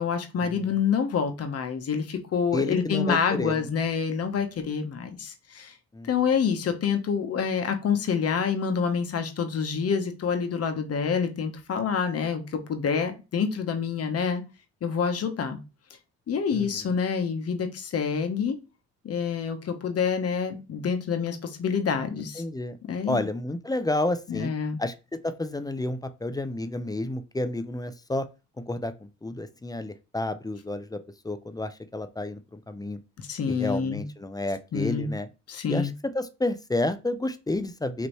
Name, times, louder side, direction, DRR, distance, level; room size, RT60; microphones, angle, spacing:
voice 1, 0.0-5.7 6.0-14.4 14.8-15.6 16.3-18.6 19.0-22.4 22.9-23.3 24.3-24.8 33.2-34.0 34.7-35.1 35.5-35.9, left 6 dB, 55° left, 1.0 m, -27 dB
voice 2, 2.5-3.7 5.9-6.1 16.5-16.7 22.4-22.8 23.1-24.5 24.8-24.9 25.2-28.3 28.6-31.0 31.2-33.0 33.5-35.3 35.7-38.1, left 2 dB, 15° left, 0.5 m, -30 dB
5.2 x 3.0 x 3.0 m
cardioid pair, 90°, 30 cm